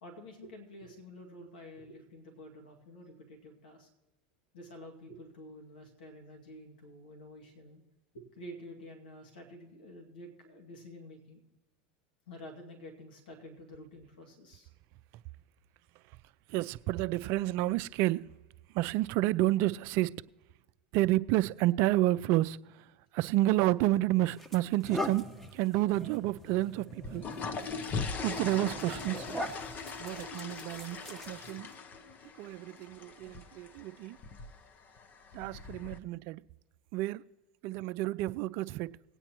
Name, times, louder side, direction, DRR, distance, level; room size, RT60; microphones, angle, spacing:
voice 1, 0.0-3.9 4.5-7.8 8.1-11.4 12.3-14.7, left 1 dB, 80° left, 2.1 m, -49 dB
voice 2, 16.5-18.3 18.7-20.1 20.9-25.3 25.5-27.2 28.2-29.3 30.0-31.7 32.4-34.2 35.3-36.4 36.9-37.2 37.6-38.9, right 16 dB, 55° right, 0.4 m, -30 dB
sound 1, 23.6-23.7 24.3-31.7, left 1 dB, 5° left, 1.0 m, -42 dB
sound 2, 26.9-36.0, left 4 dB, 35° left, 0.9 m, -41 dB
19.5 x 8.9 x 3.0 m
hypercardioid pair, 95°, 5 cm